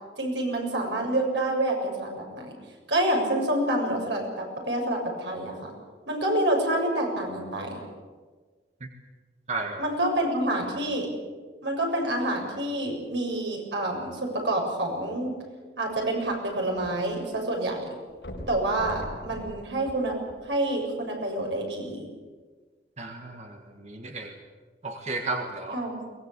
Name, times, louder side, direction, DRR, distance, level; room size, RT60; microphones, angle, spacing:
voice 1, 0.2-2.5 2.9-5.7 6.1-7.8 9.8-11.1 11.6-15.3 15.8-17.9 18.5-20.2 20.4-22.1 25.7-26.0, right 1 dB, 85° right, 1 dB, 7.1 m, -27 dB
voice 2, 9.5-9.8 23.0-23.6 23.8-24.3 24.8-25.8, right 3 dB, 40° right, 4 dB, 1.7 m, -33 dB
sound 1, 15.9-17.4 17.7-17.8 18.2-20.7 21.4-21.5, equal, 80° left, 4.4 m, -42 dB
23.0 x 19.5 x 8.4 m, 1.4 s
head